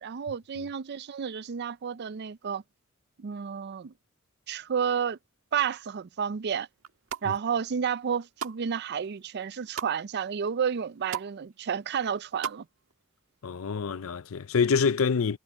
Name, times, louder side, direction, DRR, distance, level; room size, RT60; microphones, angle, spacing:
voice 1, 0.0-2.6 3.2-3.9 4.5-5.2 5.5-6.7 7.2-12.6, right 7 dB, 55° right, 0.4 m, -31 dB
sound 1, 6.8-7.3 7.8-8.6 9.0-9.9 10.5-10.6 10.8-11.3 11.6-12.6 12.9-13.0, right 7 dB, 80° right, 1.6 m, -37 dB
voice 2, 13.4-15.4, left 5 dB, 75° left, 0.6 m, -26 dB
head